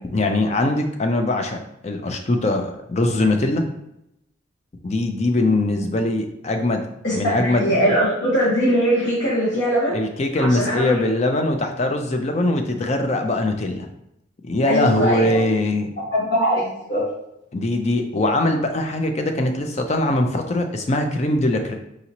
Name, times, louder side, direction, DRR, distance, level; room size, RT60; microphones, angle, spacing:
voice 1, 0.1-3.7 4.8-6.8 7.1-7.7 9.9-13.9 14.4-15.9 17.5-21.8, left 2 dB, 35° left, 5 dB, 0.4 m, -21 dB
voice 2, 7.0-10.0 10.4-11.0 14.7-15.4 16.1-17.0, equal, 70° left, -10 dB, 1.5 m, -21 dB
4.9 x 2.7 x 2.9 m, 0.82 s
head